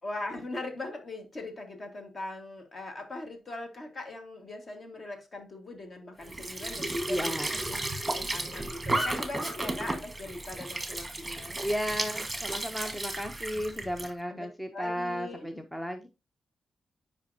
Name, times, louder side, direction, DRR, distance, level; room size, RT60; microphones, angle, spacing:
voice 1, 0.0-7.8 8.1-11.6 14.3-14.5 14.7-15.5, left 2 dB, 40° left, 1.6 m, -40 dB
Squeak / Sink (filling or washing) / Trickle dribble, 6.2-14.1, right 2 dB, 10° right, 1.3 m, -34 dB
voice 2, 7.1-7.5 11.6-16.1, equal, 10° left, 0.6 m, -34 dB
9.3 x 5.1 x 2.7 m
wide cardioid pair, 135°, 0 cm